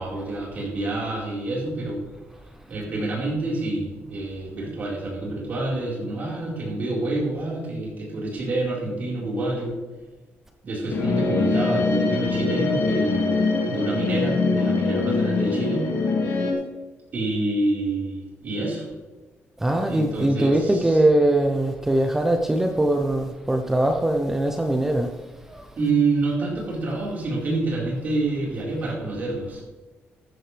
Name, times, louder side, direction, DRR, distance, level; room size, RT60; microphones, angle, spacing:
voice 1, 0.0-2.0 2.7-9.7 10.6-13.3 13.7-15.9 17.1-18.8 19.8-21.0 25.8-29.6, right 2 dB, 40° right, -4 dB, 4.6 m, -27 dB
sound 1, 10.9-16.5, left 3 dB, 90° left, 2.2 m, -23 dB
voice 2, 19.6-25.1, right 1 dB, 10° right, 4 dB, 0.7 m, -21 dB
14.0 x 11.0 x 3.4 m, 1.2 s
cardioid pair, 165°, 4 cm